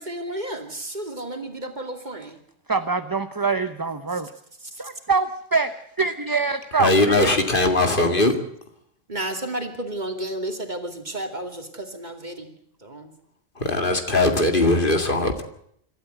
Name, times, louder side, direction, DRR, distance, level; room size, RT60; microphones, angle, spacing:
voice 1, 0.0-2.4 9.1-12.5 12.8-13.1, right 1 dB, 35° right, 5 dB, 2.7 m, -32 dB
voice 2, 2.7-4.3 4.8-7.3, right 4 dB, 20° right, 10 dB, 0.7 m, -24 dB
voice 3, 6.7-8.4 13.6-15.4, left 2 dB, 45° left, 6 dB, 2.4 m, -20 dB
26.0 x 13.0 x 8.0 m, 0.71 s
omnidirectional pair, 1.3 m